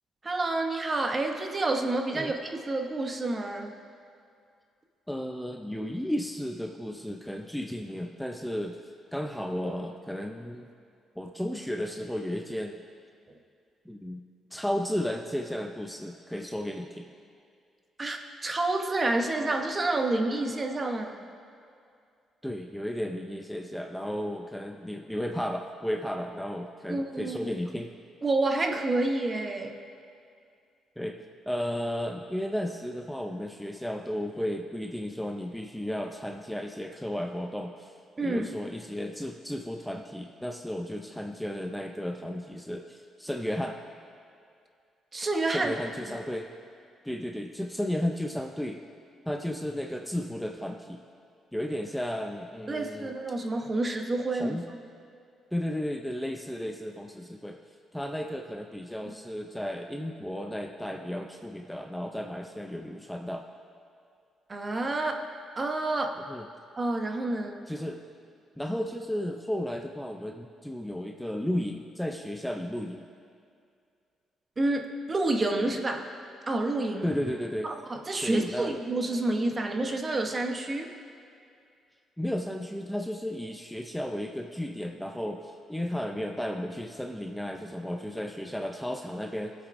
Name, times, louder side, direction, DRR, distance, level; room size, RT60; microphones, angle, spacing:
voice 1, 0.2-3.7 18.0-21.2 26.9-27.5 28.2-29.8 38.2-38.5 45.1-45.7 46.1-46.2 52.7-54.6 64.5-65.3 65.6-66.2 66.8-67.6 74.6-76.1 76.5-77.1 77.6-80.9, right 2 dB, 30° right, 4 dB, 1.0 m, -29 dB
voice 2, 5.1-8.8 9.1-10.7 11.2-12.8 13.9-14.2 14.5-17.1 22.4-27.9 31.0-31.2 31.5-37.9 38.2-43.8 45.5-46.5 47.0-48.8 49.3-51.0 51.5-53.1 54.3-54.6 55.5-57.6 57.9-63.4 66.3-66.5 67.7-68.0 68.6-73.1 77.0-77.7 78.2-78.7 82.2-89.5, equal, 5° left, 2 dB, 0.6 m, -34 dB
22.0 x 8.0 x 2.6 m, 2.4 s
cardioid pair, 90°, 0 cm